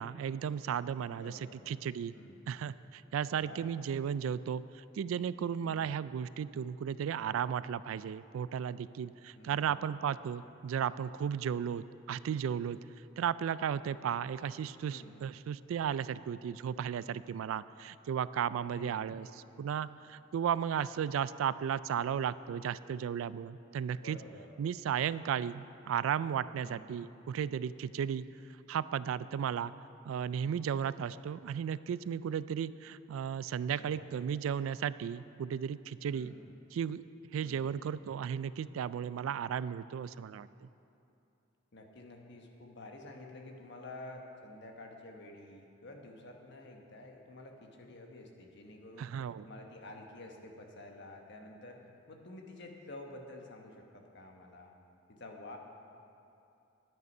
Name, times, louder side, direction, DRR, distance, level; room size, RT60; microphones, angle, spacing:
voice 1, 0.0-1.4 1.7-2.1 2.5-12.8 13.2-19.3 19.6-24.2 24.6-28.2 28.7-29.7 30.1-36.3 36.7-37.0 37.3-40.7 49.0-49.5, right 8 dB, 90° right, 17 dB, 0.3 m, -35 dB
voice 2, 1.1-1.6 2.1-2.5 3.2-3.6 5.6-5.9 9.3-9.9 14.9-15.2 18.7-19.1 23.9-24.5 26.6-26.9 33.7-34.1 36.1-36.5 37.4-37.7 41.7-49.1 49.4-54.7 55.1-55.6, left 2 dB, 60° left, 2 dB, 1.3 m, -50 dB
11.0 x 9.2 x 5.4 m, 2.7 s
head